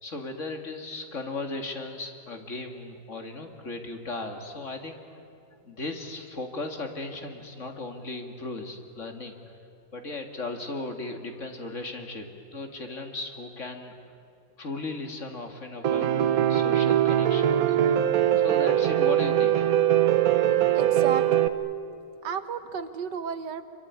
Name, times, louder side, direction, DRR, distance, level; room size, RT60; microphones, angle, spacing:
voice 1, 0.0-5.2 5.6-9.3 9.9-13.9 14.6-18.0 18.4-19.7, left 2 dB, 45° left, 5 dB, 2.4 m, -36 dB
Piano, 15.8-21.5, right 11 dB, 60° right, 1.3 m, -22 dB
voice 2, 20.6-21.4 22.2-23.6, right 7 dB, 75° right, 11 dB, 1.8 m, -33 dB
26.0 x 23.5 x 9.6 m, 2.5 s
omnidirectional pair, 1.9 m